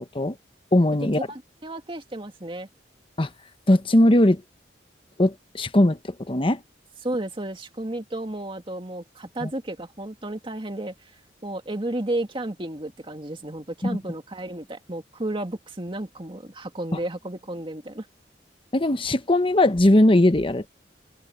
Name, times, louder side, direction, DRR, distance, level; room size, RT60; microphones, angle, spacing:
voice 1, 0.7-1.2 3.2-3.3 3.7-4.4 5.2-6.0 6.3-6.6 9.4-9.5 13.8-14.0 18.7-20.7, left 1 dB, 30° left, 1.1 m, -19 dB
voice 2, 1.3-2.7 7.0-11.1 11.4-18.1, right 1 dB, 30° right, 2.3 m, -33 dB
head